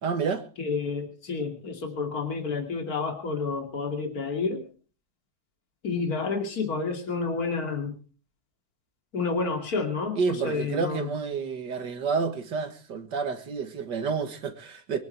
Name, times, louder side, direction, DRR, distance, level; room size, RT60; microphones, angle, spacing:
voice 1, 0.0-0.4 10.2-15.0, right 5 dB, 85° right, 2.4 m, -29 dB
voice 2, 0.6-4.6 5.8-7.9 9.1-11.1, left 4 dB, 60° left, 3.1 m, -30 dB
24.0 x 10.5 x 4.5 m
omnidirectional pair, 1.8 m